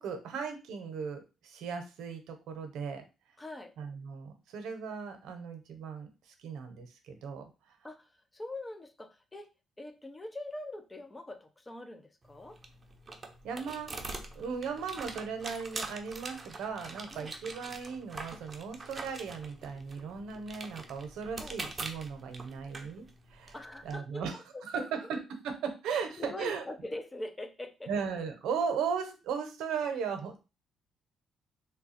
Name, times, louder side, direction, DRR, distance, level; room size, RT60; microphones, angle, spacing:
voice 1, 0.0-3.0 3.8-6.1 6.4-7.5 13.4-13.9 14.3-23.5 23.8-26.6 27.9-30.4, right 6 dB, 85° right, 6 dB, 0.8 m, -37 dB
voice 2, 3.4-3.7 7.8-9.5 9.8-12.6 17.1-17.3 21.4-21.6 23.5-24.9 25.9-27.9, left 2 dB, 20° left, 8 dB, 0.6 m, -43 dB
sound 1, 12.2-23.9, right 3 dB, 30° right, 0.6 m, -44 dB
3.2 x 2.2 x 4.1 m, 0.30 s
cardioid pair, 100°, 0 cm